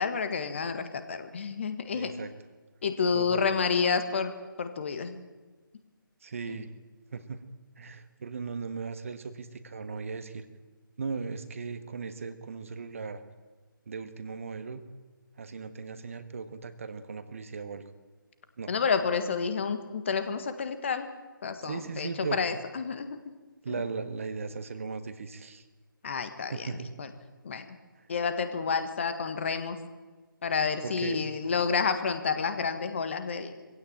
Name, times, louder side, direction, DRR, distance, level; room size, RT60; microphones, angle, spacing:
voice 1, 0.0-2.1 2.8-4.3 4.6-5.2 6.5-6.6 18.7-21.1 21.4-23.3 23.7-23.8 26.0-26.7 27.0-27.1 27.4-27.6 28.1-29.8 30.4-33.6, left 5 dB, 35° left, 9 dB, 1.7 m, -29 dB
voice 2, 1.9-2.3 3.1-3.5 6.2-6.7 7.1-7.5 7.8-10.5 11.0-13.2 13.9-14.8 15.4-17.8 18.6-18.7 21.6-22.4 23.6-25.7 26.5-26.9 28.0-28.1 28.7-28.8 30.8-31.3, right 5 dB, 40° right, 10 dB, 1.4 m, -37 dB
22.5 x 16.5 x 8.9 m, 1.3 s
figure-of-eight pair, 150°, 12 cm